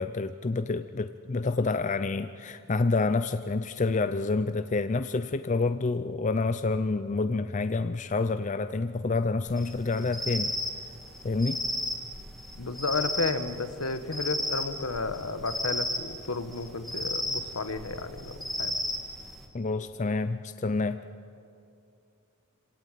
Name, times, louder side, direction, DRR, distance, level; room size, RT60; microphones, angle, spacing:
voice 1, 0.0-10.5 11.2-11.6 19.5-21.0, left 3 dB, 35° left, 11 dB, 0.5 m, -28 dB
sound 1, 9.5-19.5, left 1 dB, ahead, 2.2 m, -34 dB
voice 2, 12.5-18.8, left 3 dB, 75° left, 10 dB, 1.4 m, -32 dB
26.0 x 17.5 x 9.1 m, 2.6 s
head